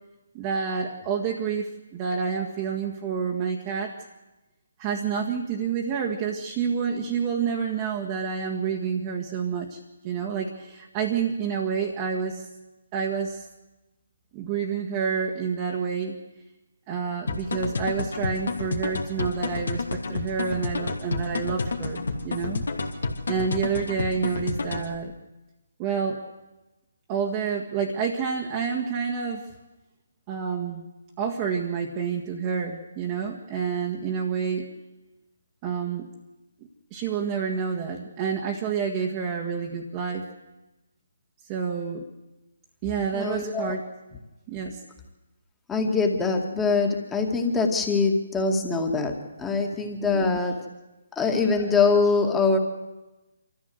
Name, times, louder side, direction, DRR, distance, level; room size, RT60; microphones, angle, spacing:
voice 1, 0.3-3.9 4.8-9.8 10.0-12.5 12.9-13.5 14.3-16.2 16.9-22.6 23.3-25.1 25.8-26.2 27.1-29.5 30.3-30.9 31.2-34.7 35.6-36.1 36.9-40.3 41.5-42.1 42.8-43.8 44.5-44.8 50.0-50.4, right 6 dB, 25° right, 0 dB, 1.8 m, -28 dB
sound 1, 17.3-24.9, left 3 dB, 70° left, 2.7 m, -30 dB
voice 2, 43.1-43.7 45.7-50.6 51.1-52.6, left 4 dB, 10° left, 3 dB, 2.4 m, -23 dB
25.5 x 14.5 x 8.1 m, 1.1 s
figure-of-eight pair, 145°, 0 cm